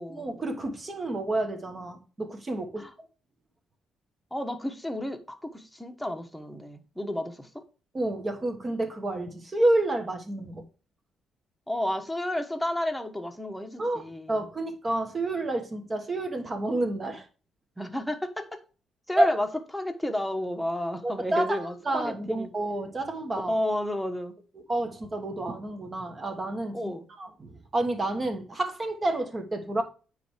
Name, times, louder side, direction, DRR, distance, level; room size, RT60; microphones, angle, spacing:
voice 1, 0.1-2.9 7.9-10.6 13.8-17.3 19.2-19.3 21.0-23.5 24.7-29.8, right 2 dB, 30° right, 1.3 m, -29 dB
voice 2, 4.3-7.5 11.7-14.3 17.8-18.6 19.1-19.5 19.7-22.5 23.5-24.3 26.7-27.1, left 1 dB, ahead, 1.2 m, -31 dB
9.1 x 3.3 x 4.6 m
cardioid pair, 90°, 0 cm